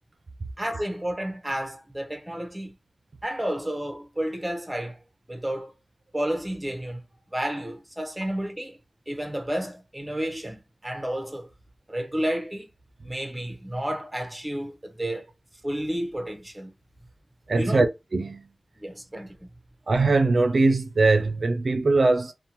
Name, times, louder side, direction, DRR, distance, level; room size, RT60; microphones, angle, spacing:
voice 1, 0.6-2.7 3.2-5.0 5.3-5.7 6.1-7.0 7.3-8.8 9.1-11.5 11.9-12.7 13.0-15.3 15.6-16.7 17.6-17.8 18.8-19.5, right 1 dB, 15° right, 0.7 m, -31 dB
voice 2, 17.5-18.5 19.9-22.3, right 3 dB, 75° right, 0.4 m, -21 dB
2.6 x 2.1 x 2.9 m
wide cardioid pair, 55°, 0 cm